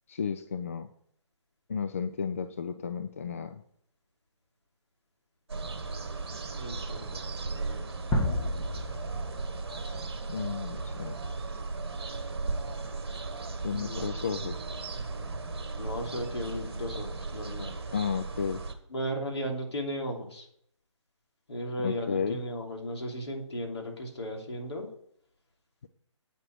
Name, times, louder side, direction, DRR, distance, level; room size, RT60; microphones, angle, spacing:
voice 1, 0.1-0.9 1.7-3.6 10.3-11.1 13.6-14.7 17.9-18.6 21.8-22.4, left 6 dB, 30° left, 9 dB, 0.4 m, -33 dB
sound 1, 5.5-18.7, right 3 dB, 50° right, 1.4 m, -36 dB
voice 2, 6.5-7.2 7.5-7.9 13.7-14.2 15.8-17.8 18.9-20.5 21.5-24.9, equal, 60° left, 1 dB, 3.2 m, -36 dB
sound 2, 8.1-11.0, left 1 dB, 10° left, 1.1 m, -32 dB
8.7 x 8.6 x 4.6 m, 0.66 s
figure-of-eight pair, 145°, 16 cm